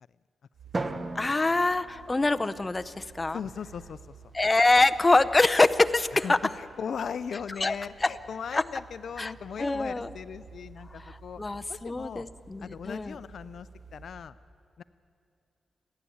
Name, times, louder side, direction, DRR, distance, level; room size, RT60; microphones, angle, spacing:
sound 1, 0.5-14.2, right 5 dB, 80° right, 6.1 m, -52 dB
Drum, 0.7-3.0, right 2 dB, 35° right, 1.3 m, -37 dB
voice 1, 1.1-3.4 4.3-6.4 7.6-7.7 8.0-8.1 8.5-8.6 9.2-9.3 9.6-10.1 11.1-13.2, left 2 dB, 25° left, 10 dB, 0.7 m, -24 dB
voice 2, 3.3-4.0 6.2-11.4 11.7-12.3 12.6-14.4 14.8-14.9, left 7 dB, 70° left, 14 dB, 0.4 m, -38 dB
29.5 x 11.5 x 8.6 m, 2.6 s
cardioid pair, 80°, 0 cm